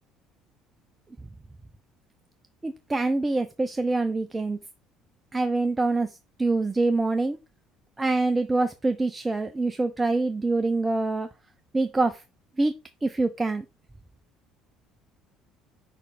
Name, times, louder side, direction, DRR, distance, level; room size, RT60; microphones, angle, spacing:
voice 1, 2.6-4.6 5.3-6.1 6.4-7.4 8.0-11.3 11.7-12.2 12.6-12.7 13.0-13.6, right 3 dB, 20° right, 9 dB, 0.5 m, -25 dB
5.2 x 4.3 x 4.5 m, 0.27 s
figure-of-eight pair, 55°, 0 cm